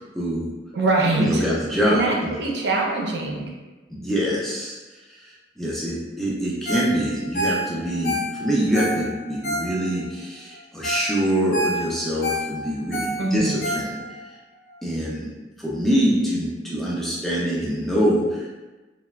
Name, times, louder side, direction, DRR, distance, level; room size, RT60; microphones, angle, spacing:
voice 1, 0.1-0.5 1.2-2.3 3.9-14.4 14.8-15.3 15.6-18.5, equal, ahead, -6 dB, 0.3 m, -24 dB
voice 2, 0.7-1.4 1.9-3.5 13.2-13.6, right 2 dB, 65° right, -1 dB, 0.5 m, -23 dB
Ringtone, 6.6-6.9 7.2-10.1 10.5-10.6 10.8-11.1 11.4-14.3 14.7-14.8, equal, 55° left, 0.5 m, -28 dB
3.1 x 2.1 x 2.2 m, 1.2 s
head